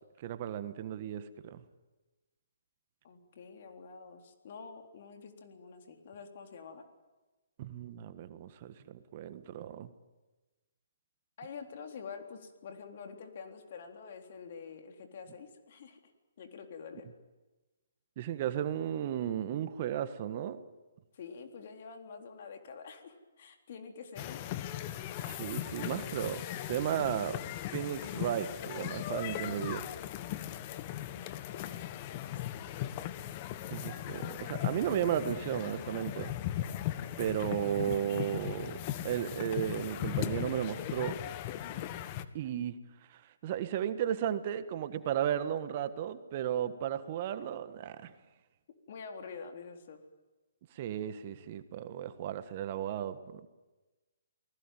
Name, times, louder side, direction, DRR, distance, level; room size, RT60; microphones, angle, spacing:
voice 1, 0.2-1.6 7.6-9.9 18.2-20.6 25.2-27.4 27.7-29.9 33.7-36.3 37.2-38.8 39.0-41.2 42.3-42.8 43.1-48.1 50.7-53.5, right 10 dB, 40° right, 11 dB, 1.5 m, -34 dB
voice 2, 3.0-6.9 11.4-16.0 16.4-17.1 21.1-24.6 31.1-32.4 41.6-41.9 48.9-50.0, left 5 dB, 50° left, 4 dB, 3.8 m, -47 dB
sound 1, 24.2-42.3, left 12 dB, 35° left, 1.3 m, -38 dB
29.0 x 20.0 x 9.2 m, 1.2 s
figure-of-eight pair, 135°, 0 cm